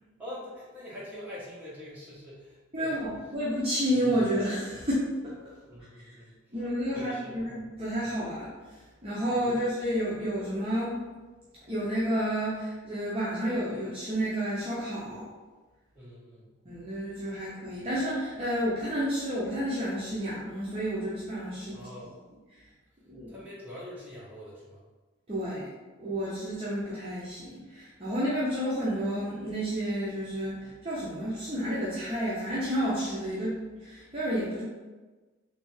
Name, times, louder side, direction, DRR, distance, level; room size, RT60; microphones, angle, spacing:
voice 1, 0.2-3.0 5.7-6.4 6.9-7.4 15.9-16.6 21.7-22.1 23.3-24.8, left 1 dB, 10° right, -8 dB, 1.0 m, -44 dB
voice 2, 2.7-5.5 6.0-6.1 6.5-11.0 11.7-15.3 16.7-22.1 23.1-23.4 25.3-25.7 26.0-34.6, equal, 25° right, -9 dB, 0.7 m, -31 dB
3.3 x 3.2 x 3.1 m, 1.3 s
head